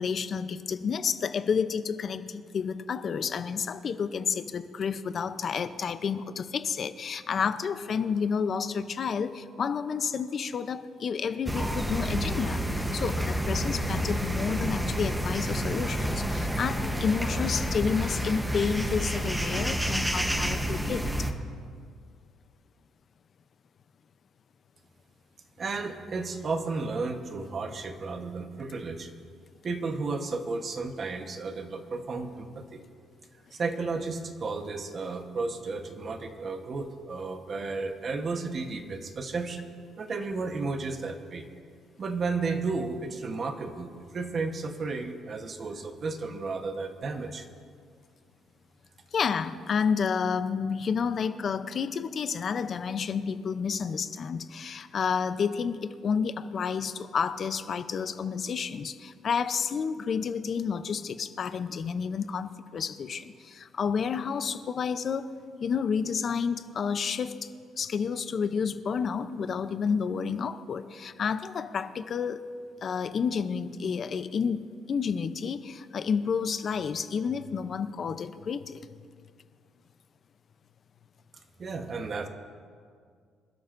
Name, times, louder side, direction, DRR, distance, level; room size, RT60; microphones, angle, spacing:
voice 1, 0.0-21.3 49.1-65.3 65.6-67.5 67.8-72.5 72.8-78.9, left 6 dB, 40° left, 11 dB, 0.6 m, -30 dB
sound 1, 11.5-21.3, equal, 5° right, 0.9 m, -29 dB
voice 2, 25.6-29.1 29.6-32.8 33.5-39.7 40.0-41.5 42.0-47.5 81.6-82.3, right 4 dB, 35° right, 6 dB, 1.0 m, -33 dB
26.5 x 12.5 x 2.6 m, 2.1 s
cardioid pair, 155°, 0 cm